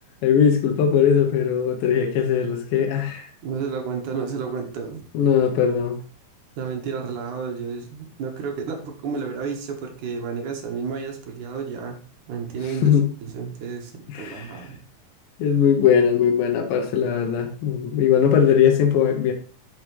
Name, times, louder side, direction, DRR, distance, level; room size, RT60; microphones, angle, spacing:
voice 1, 0.2-3.3 5.1-6.0 12.8-13.1 14.1-14.7 15.4-19.3, left 8 dB, 80° left, 2.7 m, -20 dB
voice 2, 3.4-5.0 6.6-12.0 12.3-12.9 13.2-14.8, right 5 dB, 65° right, 2.7 m, -31 dB
8.7 x 6.8 x 3.2 m
omnidirectional pair, 4.1 m